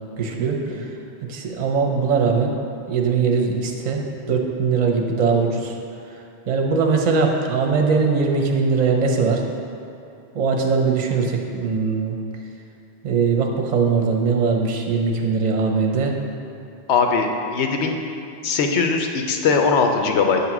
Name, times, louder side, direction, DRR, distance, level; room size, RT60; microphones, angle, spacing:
voice 1, 0.2-0.9 1.3-2.5 2.9-5.8 6.5-9.4 10.3-12.2 13.0-16.2, right 5 dB, 45° right, 2 dB, 0.7 m, -21 dB
voice 2, 16.9-18.0 18.4-20.4, left 5 dB, 85° left, 3 dB, 0.9 m, -20 dB
7.9 x 2.9 x 5.9 m, 2.7 s
omnidirectional pair, 1.1 m